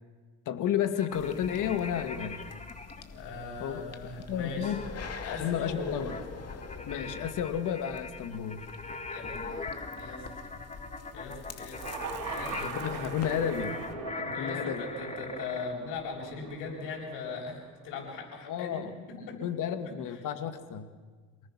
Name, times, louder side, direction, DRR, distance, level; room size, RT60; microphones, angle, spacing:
voice 1, 0.5-2.4 3.6-4.8 5.4-6.1 6.9-8.7 12.5-13.8 14.1-14.8 18.5-18.9 19.4-20.9, left 9 dB, 75° left, 8 dB, 2.1 m, -32 dB
sound 1, 0.9-3.0 4.6-15.7, left 3 dB, 20° left, 2.0 m, -41 dB
sound 2, 1.1-13.9, left 4 dB, 50° left, 2.5 m, -45 dB
voice 2, 3.0-4.7 5.2-6.1 9.1-10.3 11.1-11.9 12.3-12.7 14.2-18.8 19.1-19.4 20.1-20.2, left 4 dB, 90° left, -1 dB, 7.6 m, -39 dB
sound 3, 11.7-18.0, right 7 dB, 70° right, 3.7 m, -42 dB
28.0 x 19.5 x 6.2 m, 1.5 s
cardioid pair, 80°, 32 cm